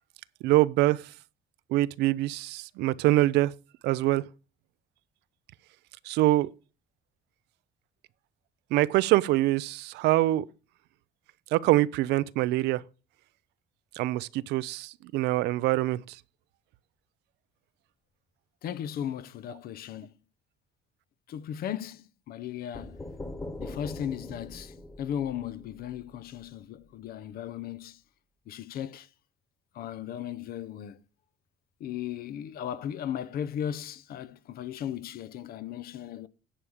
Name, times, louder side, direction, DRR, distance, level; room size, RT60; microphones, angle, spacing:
voice 1, 0.4-1.0 1.7-3.5 3.8-4.2 6.1-6.5 8.7-10.5 11.5-12.8 14.0-16.2, right 17 dB, 85° right, 0.5 m, -24 dB
voice 2, 18.6-20.1 21.3-23.0 23.6-28.0 28.5-29.1 29.7-31.0 31.8-36.3, left 10 dB, 65° left, 0.7 m, -36 dB
sound 1, 22.7-26.5, left 2 dB, 15° left, 1.5 m, -42 dB
10.0 x 4.9 x 7.1 m
cardioid pair, 110°, 17 cm